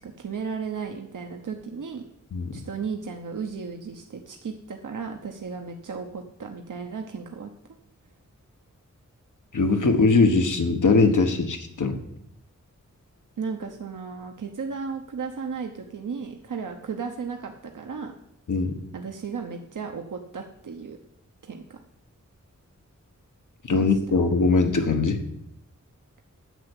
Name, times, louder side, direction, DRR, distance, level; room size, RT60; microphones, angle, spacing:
voice 1, 0.0-2.0 2.5-7.5 13.4-18.1 18.9-21.0 21.4-21.8 23.7-23.9, right 5 dB, 85° right, 3 dB, 0.9 m, -34 dB
voice 2, 2.3-2.6 9.5-12.0 18.5-18.8 23.7-25.2, left 3 dB, 80° left, 6 dB, 1.3 m, -21 dB
9.4 x 6.8 x 8.1 m, 0.76 s
wide cardioid pair, 90°, 30 cm